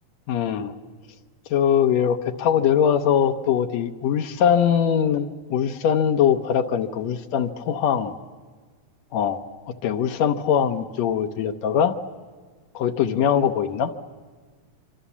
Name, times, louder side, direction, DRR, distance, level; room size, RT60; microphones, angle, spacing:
voice 1, 0.3-0.7 1.5-8.1 9.1-9.4 9.7-12.0 12.8-13.9, left 8 dB, 70° left, 7 dB, 2.0 m, -22 dB
26.0 x 25.5 x 7.2 m, 1.5 s
omnidirectional pair, 3.3 m